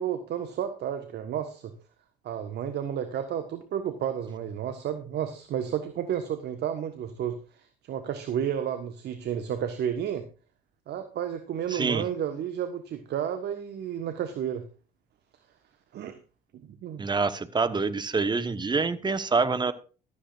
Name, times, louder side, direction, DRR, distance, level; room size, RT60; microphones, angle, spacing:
voice 1, 0.0-1.7 2.2-10.2 10.9-14.7 15.9-16.2 16.5-17.1, right 9 dB, 50° right, 9 dB, 1.4 m, -32 dB
voice 2, 11.7-12.0 17.0-19.7, right 4 dB, 20° right, 12 dB, 1.2 m, -26 dB
15.0 x 13.0 x 2.6 m, 0.35 s
hypercardioid pair, 60°, 21 cm